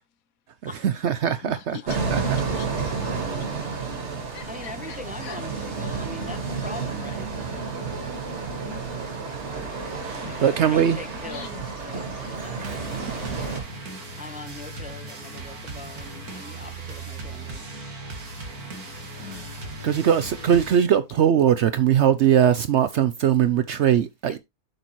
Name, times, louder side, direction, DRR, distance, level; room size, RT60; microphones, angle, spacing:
voice 1, 0.8-1.8 2.1-2.2 10.0-11.0 12.3-12.5 19.2-19.5 19.8-24.4, right 9 dB, 65° right, 0.7 m, -21 dB
voice 2, 1.4-2.0 2.3-2.9 4.3-5.4 8.6-9.7 11.3-11.6 19.2-19.5 20.0-20.5, left 9 dB, 70° left, 1.2 m, -43 dB
sound 1, 1.9-13.6, right 4 dB, 50° right, 2.0 m, -31 dB
sound 2, 2.2-20.8, right 2 dB, 85° right, 2.4 m, -40 dB
voice 3, 4.5-7.3 10.2-13.9 14.2-17.7 24.3-24.4, left 2 dB, 10° right, 0.5 m, -41 dB
7.8 x 6.6 x 3.0 m
omnidirectional pair, 1.6 m